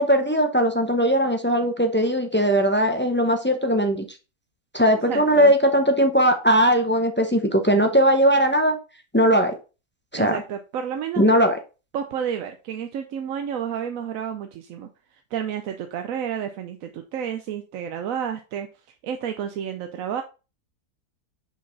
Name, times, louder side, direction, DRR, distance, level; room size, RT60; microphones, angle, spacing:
voice 1, 0.0-4.0 4.7-8.8 9.1-9.6 10.1-10.4 11.2-11.6, equal, 15° left, 4 dB, 0.4 m, -19 dB
voice 2, 5.1-5.5 10.1-11.3 11.9-18.7 19.0-20.2, right 8 dB, 65° right, 7 dB, 1.0 m, -30 dB
6.0 x 5.0 x 3.9 m, 0.31 s
omnidirectional pair, 1.6 m